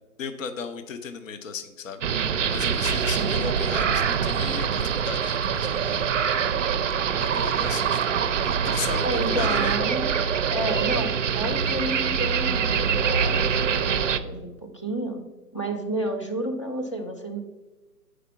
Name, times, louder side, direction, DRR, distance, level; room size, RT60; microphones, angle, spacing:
voice 1, 0.2-6.1 7.2-8.1 8.4-9.7, left 6 dB, 55° left, 9 dB, 0.8 m, -35 dB
sound 1, 2.0-14.2, right 7 dB, 50° right, 0.5 m, -24 dB
voice 2, 3.1-3.6 9.0-10.1 10.5-15.2 15.5-17.4, right 1 dB, 20° left, 3 dB, 0.4 m, -31 dB
7.9 x 5.0 x 5.7 m, 1.1 s
figure-of-eight pair, 135°, 48 cm